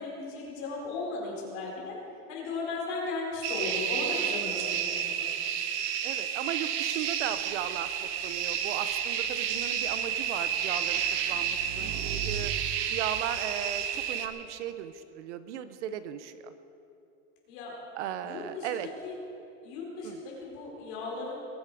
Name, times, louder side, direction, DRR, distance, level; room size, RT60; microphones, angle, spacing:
voice 1, 0.0-1.9 2.3-5.3 17.5-17.7 18.2-19.1 19.6-21.3, left 3 dB, 40° left, -3 dB, 4.5 m, -36 dB
sound 1, 3.4-14.3, right 8 dB, 30° right, 0.7 m, -31 dB
voice 2, 6.0-7.9 8.2-12.5 12.9-16.5 18.0-18.9 20.0-20.2, right 10 dB, 70° right, 11 dB, 0.9 m, -36 dB
Motorcycle / Engine, 7.0-14.1, right 6 dB, 45° right, 1.6 m, -42 dB
21.5 x 10.5 x 4.9 m, 2.8 s
supercardioid pair, 180°, 37 cm